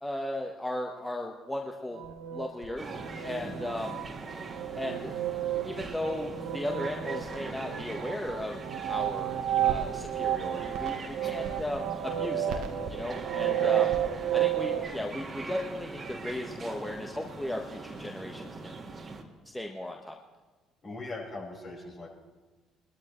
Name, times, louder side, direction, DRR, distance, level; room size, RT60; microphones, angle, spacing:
voice 1, 0.0-2.0 2.3-2.9 3.2-4.0 4.7-5.2 5.6-9.4 9.6-13.9 14.3-18.8 19.5-20.1, left 1 dB, 10° left, 1 dB, 1.3 m, -36 dB
sound 1, 1.9-14.9, right 11 dB, 70° right, 1.1 m, -32 dB
sound 2, 2.8-19.2, right 3 dB, 40° right, 1.8 m, -42 dB
voice 2, 3.4-3.7 11.2-11.3 13.1-13.2 13.6-14.1 20.8-22.1, left 2 dB, 45° left, -2 dB, 5.5 m, -41 dB
21.5 x 13.0 x 3.2 m, 1.2 s
hypercardioid pair, 60°, 0 cm